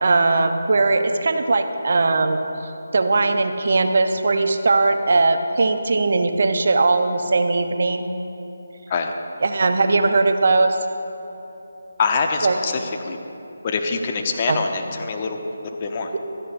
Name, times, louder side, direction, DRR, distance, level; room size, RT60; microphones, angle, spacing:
voice 1, 0.0-2.4 2.9-8.0 9.4-10.8 12.4-12.5 14.5-14.6, right 3 dB, 55° right, 7 dB, 0.8 m, -19 dB
voice 2, 12.0-13.2 13.6-16.1, left 4 dB, 30° left, 3 dB, 0.8 m, -25 dB
16.5 x 13.5 x 2.6 m, 3.0 s
figure-of-eight pair, 155°, 0 cm